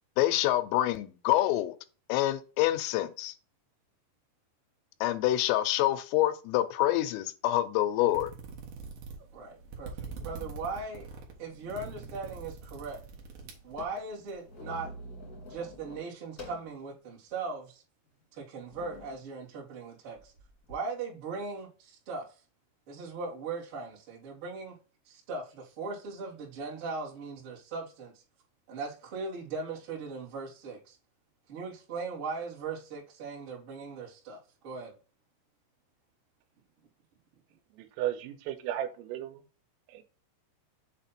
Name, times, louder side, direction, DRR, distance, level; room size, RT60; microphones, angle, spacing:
voice 1, 0.2-1.7 2.1-3.3 5.0-8.3, left 14 dB, 80° left, 3.2 m, -26 dB
rubbing fingers, 8.1-14.3, right 5 dB, 65° right, 2.2 m, -44 dB
voice 2, 9.3-11.1 11.4-13.0 13.6-14.9 15.5-17.8 18.3-20.3 20.7-22.3 22.9-24.8 25.1-28.1 28.7-31.0 31.5-34.9, right 4 dB, 45° right, 1.8 m, -39 dB
sound 1, 9.4-9.5 10.0-10.6 11.3-12.3 12.6-12.7 13.0-16.8 17.3-17.4 18.1-18.2 18.7-19.2 20.2-20.8, left 1 dB, 40° left, 1.4 m, -48 dB
voice 3, 37.7-39.4 39.9-40.0, right 12 dB, 85° right, 3.4 m, -34 dB
7.5 x 3.3 x 4.3 m
omnidirectional pair, 6.0 m